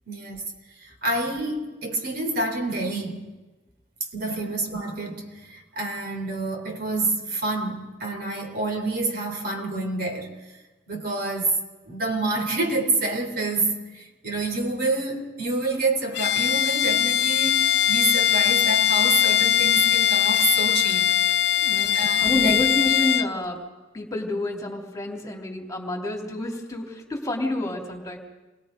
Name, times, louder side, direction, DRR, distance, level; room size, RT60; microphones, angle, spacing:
voice 1, 0.1-0.5 0.8-3.2 4.1-10.6 10.9-11.6 11.8-21.2 21.9-22.6, right 2 dB, 55° right, 3.8 m, -28 dB
Bowed string instrument, 16.1-23.3, left 11 dB, 65° left, 0.8 m, -21 dB
voice 2, 21.6-23.7 23.9-28.2, left 1 dB, 20° left, 3.1 m, -29 dB
28.0 x 21.5 x 5.2 m
head